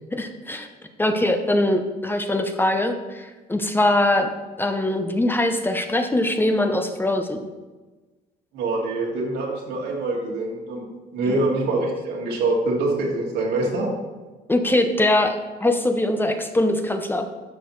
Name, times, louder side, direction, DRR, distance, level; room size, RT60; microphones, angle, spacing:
voice 1, 0.1-0.7 1.0-4.3 4.6-7.4 11.3-11.5 14.5-17.3, left 1 dB, 10° left, 6 dB, 0.7 m, -22 dB
voice 2, 8.5-10.8 11.1-13.9, right 2 dB, 80° right, -2 dB, 2.3 m, -24 dB
11.5 x 6.3 x 3.1 m, 1.3 s
cardioid pair, 110°, 17 cm